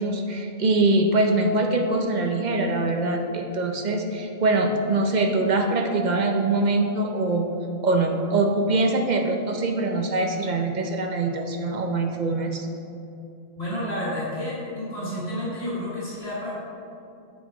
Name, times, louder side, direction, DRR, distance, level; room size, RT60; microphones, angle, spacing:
voice 1, 0.0-7.5 7.8-12.7, right 2 dB, 45° right, 3 dB, 0.6 m, -23 dB
voice 2, 13.6-16.6, left 1 dB, 50° left, -8 dB, 1.8 m, -30 dB
7.3 x 6.0 x 4.8 m, 2.6 s
omnidirectional pair, 1.4 m